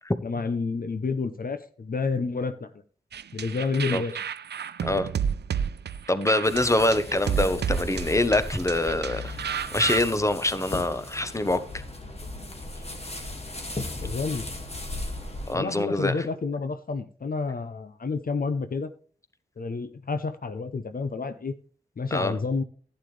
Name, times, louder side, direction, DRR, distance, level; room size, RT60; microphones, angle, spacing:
voice 1, 0.2-2.7 3.3-4.1 13.9-14.5 15.5-18.9 19.6-21.5 22.0-22.6, left 4 dB, 55° left, 0.8 m, -29 dB
sound 1, 3.1-10.0, right 8 dB, 80° right, 0.5 m, -31 dB
voice 2, 6.1-9.4 9.7-11.6 15.5-16.3 22.1-22.3, left 1 dB, 15° left, 1.0 m, -24 dB
sound 2, 6.4-15.6, left 2 dB, 35° left, 2.2 m, -36 dB
11.5 x 9.0 x 3.3 m
cardioid pair, 45°, 17 cm